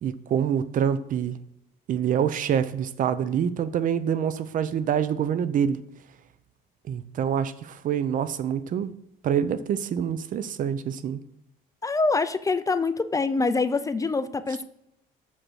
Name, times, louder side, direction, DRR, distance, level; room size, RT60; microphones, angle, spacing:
voice 1, 0.0-1.4 1.9-5.8 6.9-8.9 9.2-11.2, right 8 dB, 50° right, 0.6 m, -26 dB
voice 2, 11.8-14.6, left 3 dB, 20° left, 0.4 m, -25 dB
7.3 x 5.2 x 6.3 m
cardioid pair, 110°, 17 cm